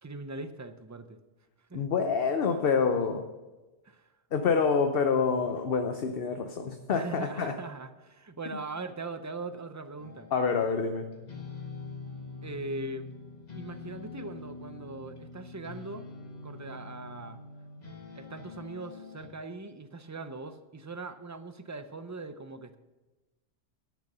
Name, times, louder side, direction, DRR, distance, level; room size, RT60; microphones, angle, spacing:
voice 1, 0.0-1.2 1.7-1.8 3.8-4.1 6.9-10.3 12.4-13.1 13.5-16.1 16.4-17.4 18.1-22.8, right 3 dB, 30° right, 10 dB, 0.3 m, -40 dB
voice 2, 1.7-3.2 4.3-7.5 10.3-11.1, left 5 dB, 55° left, 6 dB, 0.9 m, -27 dB
sound 1, 10.0-19.3, left 4 dB, 35° left, 1.5 m, -44 dB
10.5 x 8.3 x 6.7 m, 1.1 s
omnidirectional pair, 1.2 m